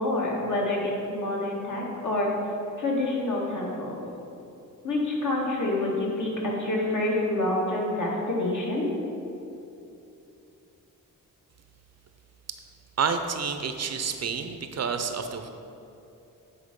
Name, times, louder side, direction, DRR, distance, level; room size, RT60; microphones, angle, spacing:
voice 1, 0.0-2.3 2.8-4.0 4.8-8.9, left 2 dB, 60° left, -3 dB, 1.8 m, -27 dB
voice 2, 13.0-15.5, right 6 dB, 50° right, 7 dB, 0.5 m, -29 dB
8.7 x 4.6 x 5.2 m, 2.8 s
wide cardioid pair, 120°, 34 cm